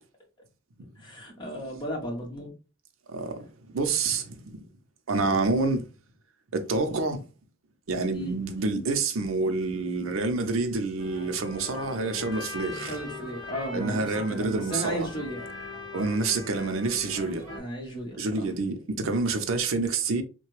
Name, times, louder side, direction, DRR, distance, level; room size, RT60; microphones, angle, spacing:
voice 1, 1.0-2.5 8.1-8.4 12.8-15.4 17.5-18.5, equal, 20° left, 1.1 m, -35 dB
voice 2, 3.1-4.6 5.1-5.8 6.5-7.2 7.9-12.9 13.7-15.1 15.9-17.4 18.2-20.2, right 3 dB, 85° right, 0.6 m, -28 dB
sound 1, 11.0-17.6, left 2 dB, 5° right, 1.9 m, -40 dB
3.2 x 2.2 x 3.1 m
head